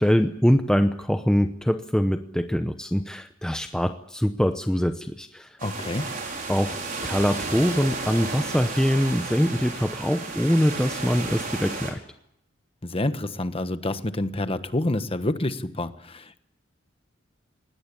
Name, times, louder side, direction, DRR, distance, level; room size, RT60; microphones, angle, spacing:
voice 1, 0.0-5.6 6.5-12.0, equal, 5° left, 7 dB, 0.8 m, -23 dB
voice 2, 5.6-6.1 12.8-16.4, left 1 dB, 30° left, 11 dB, 1.2 m, -28 dB
sound 1, 5.6-11.9, right 3 dB, 45° right, 5.3 m, -33 dB
20.5 x 18.0 x 9.9 m, 0.77 s
head